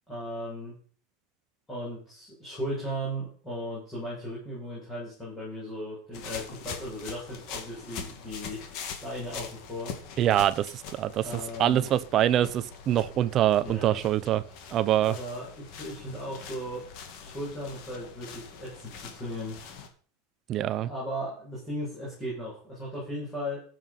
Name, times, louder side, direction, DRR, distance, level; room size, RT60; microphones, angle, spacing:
voice 1, 0.1-0.8 1.7-10.0 11.2-11.9 13.6-14.0 15.0-16.8 17.2-19.6 20.8-23.6, equal, 10° left, 7.7 m, -37 dB
sound 1, 6.1-19.9, left 6 dB, 40° left, 2.7 m, -43 dB
voice 2, 10.2-11.2 11.6-14.4 14.7-15.1 20.5-20.9, right 12 dB, 25° right, 0.8 m, -24 dB
15.5 x 7.8 x 5.6 m
supercardioid pair, 180°, 0 cm